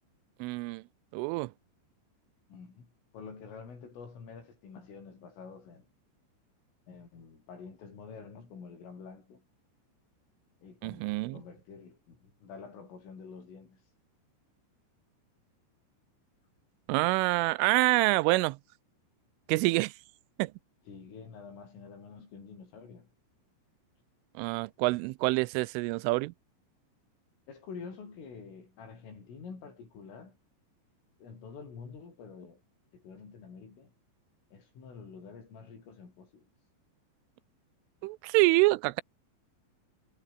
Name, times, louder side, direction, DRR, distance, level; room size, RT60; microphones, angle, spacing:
voice 1, 0.4-0.8 1.1-1.5 10.8-11.4 16.9-18.6 19.5-19.9 20.4-20.5 24.4-26.3 38.0-39.0, right 22 dB, 85° right, 3.2 m, -26 dB
voice 2, 2.5-5.9 6.9-9.5 10.6-13.8 20.9-23.1 27.5-30.4 31.2-32.6 32.9-33.9 34.5-36.5, left 5 dB, 90° left, 9.8 m, -48 dB
omnidirectional pair, 5.6 m